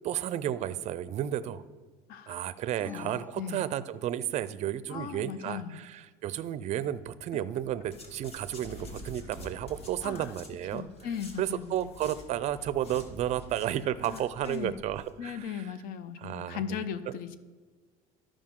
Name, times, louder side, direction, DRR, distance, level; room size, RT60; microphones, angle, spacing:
voice 1, 0.0-1.6 2.3-10.9 11.4-15.7 16.2-16.8, right 11 dB, 45° right, 15 dB, 0.4 m, -32 dB
voice 2, 2.1-2.4 2.8-3.6 4.9-5.8 7.3-7.4 10.0-10.3 10.7-11.7 14.0-14.7 15.2-17.4, left 8 dB, 60° left, 14 dB, 0.6 m, -38 dB
sound 1, 2.8-4.5, left 4 dB, 10° left, 0.5 m, -50 dB
Wind, 7.5-14.9, equal, 80° left, 2.5 m, -49 dB
sound 2, 7.9-12.2 12.5-15.1 15.3-15.4, left 2 dB, 40° left, 1.3 m, -52 dB
13.5 x 5.0 x 3.7 m, 1.4 s
cardioid pair, 120°, 17 cm